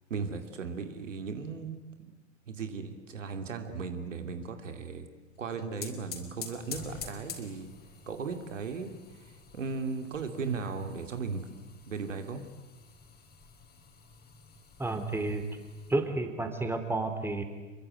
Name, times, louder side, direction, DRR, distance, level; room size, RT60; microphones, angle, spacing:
voice 1, 0.1-2.1 2.5-5.1 5.4-7.7 8.1-11.5 11.9-12.4, right 5 dB, 75° right, 7 dB, 2.6 m, -37 dB
sound 1, 5.3-15.9, left 6 dB, 25° left, 4.4 m, -48 dB
voice 2, 14.8-15.4 15.9-17.4, right 2 dB, 5° right, 6 dB, 3.4 m, -31 dB
27.5 x 23.0 x 9.4 m, 1.2 s
figure-of-eight pair, 90°, 38 cm